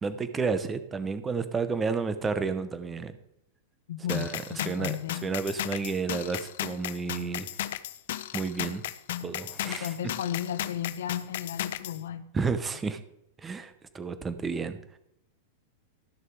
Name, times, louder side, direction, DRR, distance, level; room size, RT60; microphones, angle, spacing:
voice 1, 0.0-3.1 4.1-7.6 8.3-8.8 9.2-9.9 12.3-13.0 13.4-15.0, right 4 dB, 15° right, 11 dB, 0.8 m, -31 dB
voice 2, 3.9-4.3 4.6-5.2 9.6-12.2, left 10 dB, 90° left, 11 dB, 0.9 m, -34 dB
sound 1, 4.1-12.0, left 12 dB, 70° left, 0.6 m, -35 dB
13.5 x 6.6 x 4.7 m, 0.79 s
supercardioid pair, 150°, 0 cm